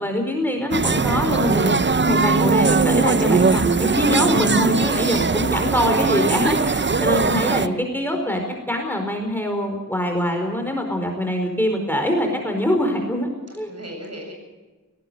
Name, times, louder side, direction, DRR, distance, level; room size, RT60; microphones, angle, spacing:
voice 1, 0.0-13.3 13.6-13.7, left 1 dB, 5° left, 3 dB, 4.6 m, -23 dB
sound 1, 0.7-7.7, right 4 dB, 35° right, 0.7 m, -20 dB
voice 2, 4.9-5.3 13.5-14.4, equal, 50° right, 2 dB, 7.9 m, -37 dB
18.5 x 18.0 x 8.0 m, 1.2 s
wide cardioid pair, 70°, 32 cm